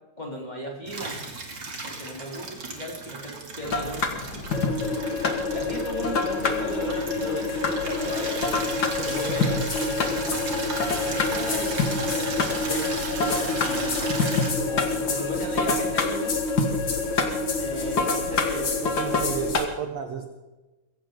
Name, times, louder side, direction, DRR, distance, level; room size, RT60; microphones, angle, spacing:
voice 1, 0.2-1.2 1.9-4.2 5.5-8.6 9.0-10.5 11.0-14.0 14.7-16.4 17.6-19.2, right 1 dB, 10° left, -3 dB, 3.1 m, -36 dB
Water tap faucet / Liquid, 0.9-14.5, right 3 dB, 35° right, 2.5 m, -35 dB
sound 1, 3.6-19.6, left 4 dB, 60° left, 1.0 m, -29 dB
sound 2, 4.5-19.5, left 3 dB, 40° left, 2.9 m, -29 dB
voice 2, 18.8-20.3, right 8 dB, 70° right, 6 dB, 1.6 m, -32 dB
22.5 x 16.5 x 3.8 m, 1.1 s
omnidirectional pair, 4.5 m